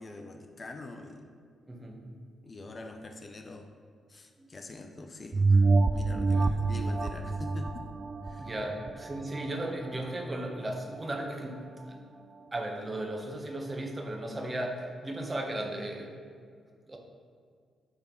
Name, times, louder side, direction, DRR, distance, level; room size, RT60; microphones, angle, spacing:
voice 1, 0.0-1.3 2.4-3.7 4.1-7.9 8.2-8.5, left 2 dB, 40° left, 5 dB, 0.6 m, -45 dB
voice 2, 1.7-2.0 4.4-4.5 6.3-6.5 8.4-12.0 12.5-16.1 16.8-17.0, right 1 dB, 30° right, 2 dB, 1.1 m, -36 dB
sound 1, 5.3-10.3 10.7-10.8, right 3 dB, 45° right, 0.4 m, -27 dB
9.0 x 3.7 x 3.8 m, 2.1 s
supercardioid pair, 50°, 0 cm